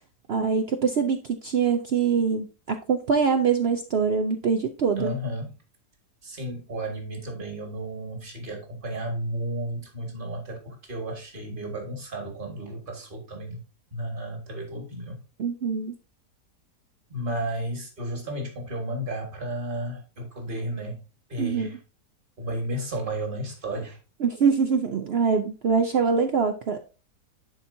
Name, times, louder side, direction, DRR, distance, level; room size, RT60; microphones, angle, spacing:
voice 1, 0.3-5.1 15.4-15.9 21.4-21.7 24.2-26.8, right 6 dB, 65° right, 0.6 m, -24 dB
voice 2, 5.0-5.6 6.2-13.6 13.9-15.2 17.1-21.8 22.4-24.0, right 1 dB, 30° right, 1.8 m, -33 dB
11.0 x 4.3 x 2.6 m
omnidirectional pair, 1.7 m